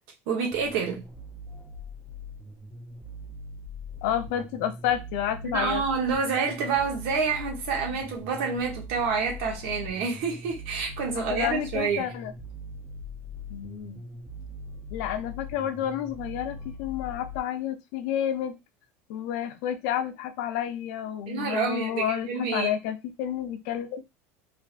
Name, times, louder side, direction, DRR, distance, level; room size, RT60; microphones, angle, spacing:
voice 1, 0.3-1.0 5.4-12.1 21.3-22.7, right 5 dB, 60° right, 0.9 m, -28 dB
sound 1, 0.5-17.4, left 2 dB, 5° left, 0.4 m, -41 dB
voice 2, 4.0-5.8 7.9-8.0 11.2-12.3 13.5-14.0 14.9-18.6 19.1-24.0, left 10 dB, 60° left, 0.5 m, -30 dB
3.4 x 2.5 x 2.4 m
cardioid pair, 165°, 7 cm